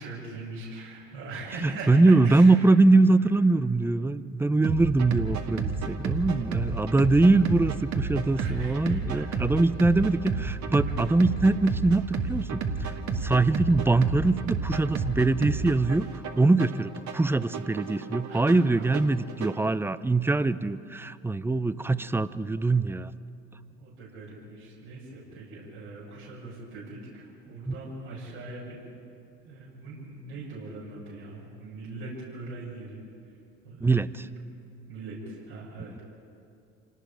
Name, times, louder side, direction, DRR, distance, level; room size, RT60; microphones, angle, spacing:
voice 1, 0.0-2.7 3.2-3.3 6.3-7.2 8.3-9.5 10.9-11.1 18.3-18.8 21.5-21.9 22.3-22.4 23.8-28.8 29.4-33.0 33.6-34.3 34.9-36.0, right 3 dB, 75° right, -6 dB, 6.8 m, -42 dB
voice 2, 1.6-12.9 13.2-23.1 27.7-27.8 33.8-34.2, right 2 dB, 5° right, 16 dB, 0.6 m, -23 dB
sound 1, 4.6-19.6, right 5 dB, 55° right, 2.1 m, -31 dB
27.5 x 18.5 x 5.0 m, 2.6 s
hypercardioid pair, 75°, 34 cm